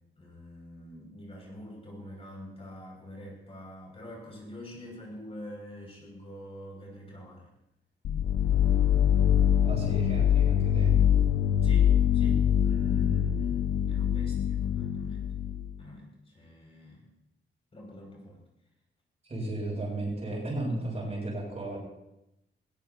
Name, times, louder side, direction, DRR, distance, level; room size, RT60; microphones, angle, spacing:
voice 1, 0.2-7.5 11.6-15.2 15.8-17.1 17.7-18.4, left 1 dB, 30° left, -2 dB, 6.5 m, -45 dB
sound 1, 8.0-15.8, left 9 dB, 70° left, 0.6 m, -24 dB
voice 2, 9.6-11.0 19.2-21.8, right 2 dB, 30° right, -2 dB, 7.5 m, -34 dB
21.5 x 20.0 x 2.9 m, 0.87 s
wide cardioid pair, 165°, 21 cm